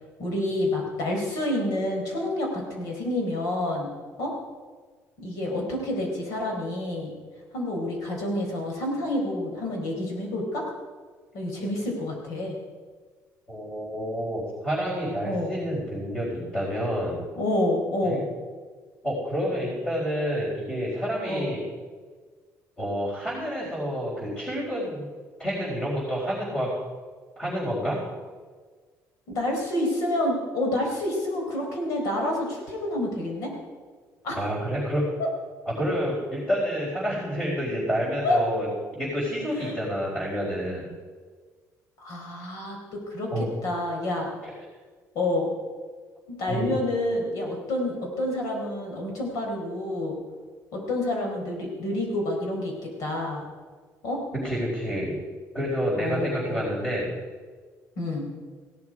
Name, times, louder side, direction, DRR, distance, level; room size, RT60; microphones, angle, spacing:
voice 1, 0.2-2.5 2.8-3.9 4.2-4.3 5.2-7.1 7.5-10.7 11.3-12.6 15.2-15.5 17.3-18.3 21.3-21.5 29.3-33.5 34.2-34.4 35.2-35.3 38.2-38.4 39.6-39.7 42.0-42.8 43.1-44.3 45.1-45.5 46.3-50.2 50.7-53.4 54.0-54.2 56.0-56.7 58.0-58.3, left 1 dB, 70° left, 1 dB, 4.3 m, -28 dB
voice 2, 13.5-17.2 18.0-18.2 19.0-21.6 22.8-25.1 25.4-26.8 27.4-28.0 34.3-35.0 35.6-40.9 43.3-43.5 44.4-44.5 46.5-46.8 54.3-55.2 55.5-57.1, equal, 20° left, -8 dB, 4.4 m, -29 dB
16.5 x 12.0 x 4.8 m, 1.5 s
cardioid pair, 165°, 6 cm